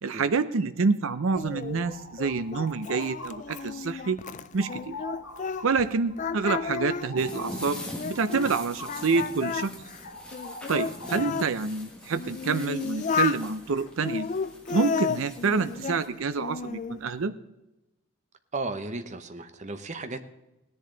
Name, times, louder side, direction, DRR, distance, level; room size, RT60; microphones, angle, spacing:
voice 1, 0.0-4.2 4.5-4.9 5.6-9.7 10.7-14.3 14.7-17.3, right 4 dB, 65° right, 12 dB, 0.6 m, -27 dB
Singing, 1.4-5.9 6.2-8.5 8.9-11.5 12.1-13.4 14.0-16.0 16.4-17.0, left 6 dB, 35° left, 0.3 m, -33 dB
sound 1, 1.6-3.9 4.2-9.4 9.7-11.5, left 2 dB, 65° left, 3.0 m, -44 dB
sound 2, 7.2-16.1, left 1 dB, 5° left, 1.6 m, -43 dB
voice 2, 18.5-20.2, right 3 dB, 35° right, 9 dB, 0.8 m, -34 dB
17.5 x 10.5 x 3.9 m, 0.97 s
head